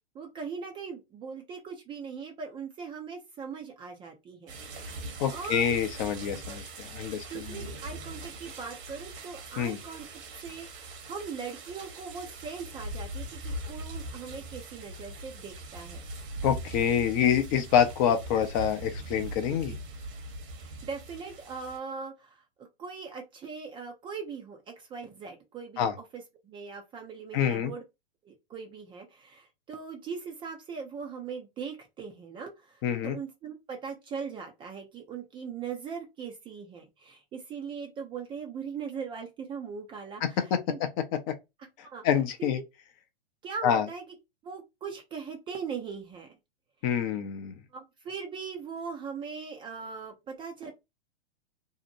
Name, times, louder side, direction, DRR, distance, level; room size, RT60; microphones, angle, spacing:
voice 1, 0.1-4.6 5.3-5.7 7.3-16.0 20.5-27.8 28.2-40.8 41.6-42.0 42.4-42.5 43.4-44.2 44.4-46.3 47.7-50.7, right 5 dB, 15° right, 0.4 m, -40 dB
sound 1, 4.5-21.8, right 1 dB, 60° right, 1.1 m, -41 dB
voice 2, 5.2-7.4 9.6-9.8 16.4-19.8 25.8-25.9 27.3-27.7 32.8-33.2 40.2-40.6 41.3-41.4 42.0-42.6 43.6-43.8 46.8-47.5, left 8 dB, 35° left, 0.5 m, -26 dB
2.7 x 2.1 x 2.5 m
hypercardioid pair, 115°, 32 cm